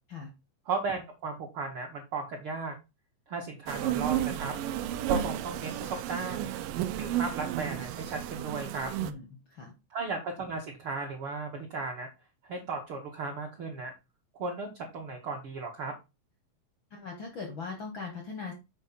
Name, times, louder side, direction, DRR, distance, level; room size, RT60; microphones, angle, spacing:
voice 1, 0.6-2.7 3.3-4.5 5.1-6.5 6.9-8.9 9.9-12.1 12.4-13.9 14.4-15.9, right 4 dB, 60° right, 1 dB, 1.5 m, -35 dB
sound 1, 3.7-9.1, right 11 dB, 85° right, 2.3 m, -32 dB
voice 2, 9.0-9.7 16.9-18.5, left 4 dB, 70° left, 3 dB, 1.1 m, -40 dB
7.2 x 5.0 x 4.0 m, 0.26 s
omnidirectional pair, 4.0 m